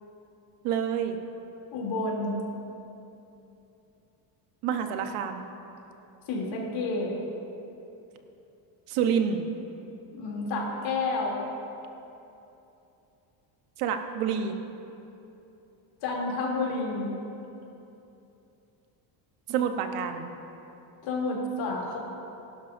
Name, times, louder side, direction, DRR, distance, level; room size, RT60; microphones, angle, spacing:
voice 1, 0.6-1.2 4.6-5.5 8.9-9.4 13.8-14.6 19.5-20.3, right 7 dB, 90° right, 6 dB, 1.2 m, -28 dB
voice 2, 1.7-2.4 6.3-7.1 10.1-11.4 16.0-17.1 21.0-22.0, left 3 dB, 65° left, -2 dB, 3.1 m, -30 dB
21.0 x 12.0 x 2.7 m, 2.9 s
cardioid pair, 150°, 49 cm